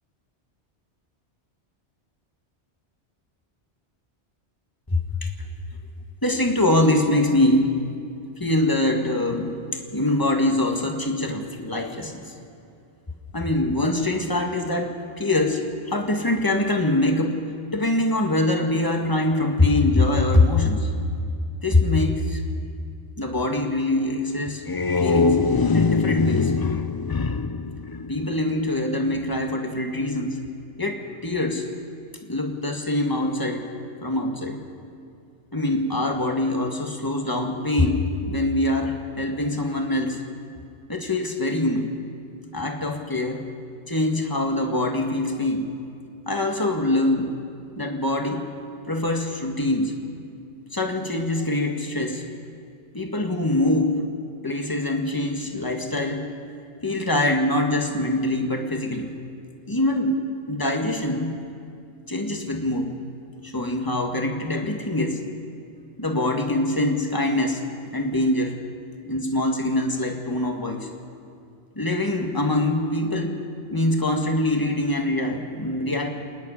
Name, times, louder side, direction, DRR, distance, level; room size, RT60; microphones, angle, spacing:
voice 1, 4.9-5.3 6.2-7.7 8.4-12.3 13.3-15.6 15.9-17.4 17.7-20.9 21.6-22.4 23.2-24.6 25.0-25.4 25.7-26.5 28.1-30.4 30.8-31.6 32.3-33.6 34.0-34.6 35.5-40.2 40.9-41.9 42.5-43.4 43.9-45.7 46.3-47.3 47.8-48.5 48.9-49.9 50.7-52.2 52.9-54.0 54.4-56.3 56.8-59.1 59.7-60.1 60.5-61.3 62.1-62.9 63.4-65.2 66.0-67.6 67.9-68.6 69.1-70.9 71.8-73.3 73.7-76.1, left 1 dB, 20° left, 3 dB, 1.7 m, -23 dB
sound 1, 24.5-28.7, left 4 dB, 35° left, 0.3 m, -23 dB
27.5 x 9.9 x 9.9 m, 2.5 s
omnidirectional pair, 1.2 m